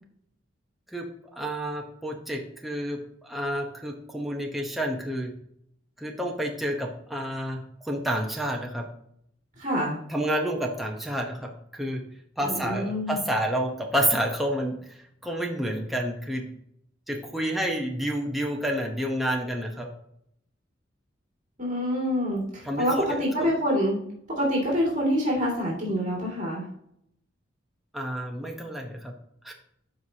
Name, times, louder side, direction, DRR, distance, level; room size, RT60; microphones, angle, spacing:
voice 1, 1.3-3.0 3.2-5.3 6.0-8.9 10.1-12.0 12.4-16.4 17.1-19.9 22.6-23.5 27.9-29.1 29.4-29.5, equal, ahead, 0 dB, 0.9 m, -29 dB
voice 2, 9.6-10.0 12.4-13.2 21.6-24.0 24.3-26.6, equal, 40° right, -4 dB, 2.5 m, -26 dB
12.5 x 4.8 x 2.8 m, 0.72 s
head